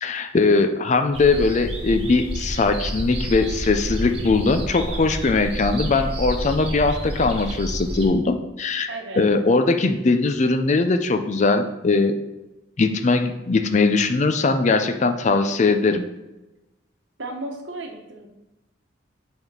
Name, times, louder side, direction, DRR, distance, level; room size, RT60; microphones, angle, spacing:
voice 1, 0.0-8.9 9.2-12.2 12.8-16.1, left 3 dB, 40° left, 8 dB, 0.5 m, -20 dB
sound 1, 1.1-8.1, equal, 30° right, 1.2 m, -30 dB
voice 2, 8.9-9.3 17.2-18.3, right 2 dB, 85° right, 3 dB, 1.1 m, -34 dB
5.9 x 3.6 x 5.5 m, 1.0 s
head